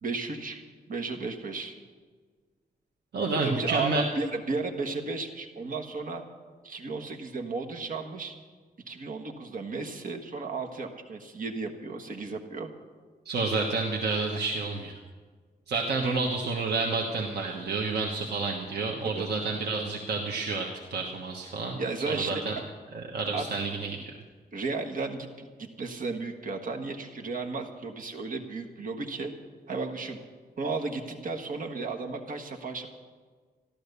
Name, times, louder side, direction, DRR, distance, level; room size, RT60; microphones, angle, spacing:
voice 1, 0.0-0.6 0.9-1.8 3.4-6.2 6.6-8.3 8.9-12.7 19.1-19.3 21.8-22.3 23.3-23.6 24.5-29.3 29.7-30.2 30.6-32.9, right 3 dB, 55° right, 3 dB, 1.5 m, -34 dB
voice 2, 3.1-4.0 13.2-14.9 15.7-21.8 22.1-22.5 22.9-24.0, right 3 dB, 85° right, 0 dB, 1.4 m, -29 dB
14.5 x 12.0 x 6.8 m, 1.5 s
wide cardioid pair, 150°, 17 cm